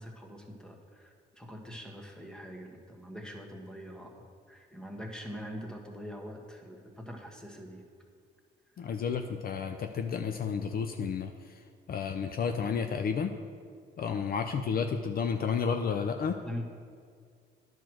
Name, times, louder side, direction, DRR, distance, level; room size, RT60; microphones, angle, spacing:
voice 1, 0.0-7.8 14.0-14.3 16.4-16.6, equal, 5° left, 2 dB, 1.3 m, -43 dB
voice 2, 8.8-11.3 11.9-13.3 14.0-16.4, left 6 dB, 50° left, 6 dB, 0.5 m, -31 dB
10.0 x 4.5 x 6.2 m, 2.1 s
cardioid pair, 90°, 20 cm